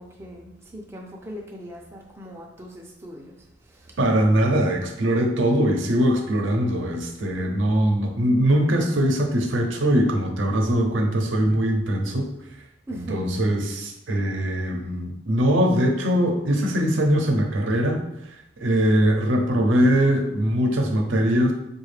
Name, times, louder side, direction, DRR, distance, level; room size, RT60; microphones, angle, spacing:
voice 1, 0.0-3.4 3.6-4.0 12.9-13.5, equal, 15° right, -1 dB, 0.4 m, -40 dB
voice 2, 4.0-12.3 12.9-18.0 18.6-21.5, equal, 90° right, 2 dB, 0.6 m, -21 dB
4.9 x 2.3 x 3.2 m, 0.83 s
head